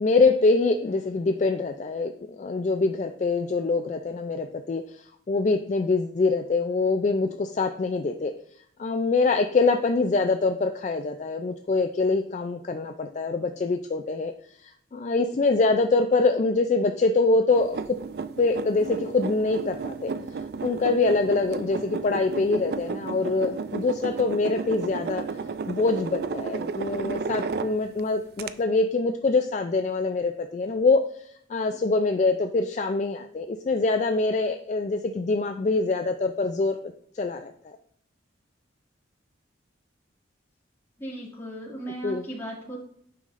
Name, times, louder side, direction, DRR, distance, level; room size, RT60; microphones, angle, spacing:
voice 1, 0.0-8.3 8.8-14.3 14.6-17.8 18.4-20.1 20.6-25.2 25.7-31.0 31.5-36.8 37.1-37.8 42.0-42.2, left 3 dB, 40° left, 6 dB, 0.3 m, -24 dB
sound 1, 17.5-28.0 28.4-28.5, right 4 dB, 55° right, 0.3 m, -33 dB
voice 2, 41.0-42.8, right 1 dB, 15° left, -5 dB, 2.0 m, -36 dB
9.2 x 5.5 x 2.5 m, 0.66 s
head